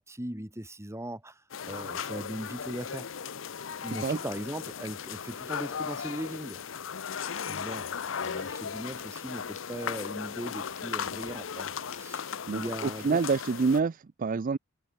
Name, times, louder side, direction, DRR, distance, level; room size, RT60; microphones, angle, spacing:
voice 1, 0.0-3.1 3.8-6.6 7.5-13.2, right 1 dB, 15° right, 3.4 m, -39 dB
sound 1, 1.5-13.8, left 7 dB, 75° left, 0.7 m, -37 dB
Crackle, 7.1-12.2, left 7 dB, 35° left, 5.3 m, -58 dB
voice 2, 12.5-14.6, right 4 dB, 45° right, 0.4 m, -27 dB
head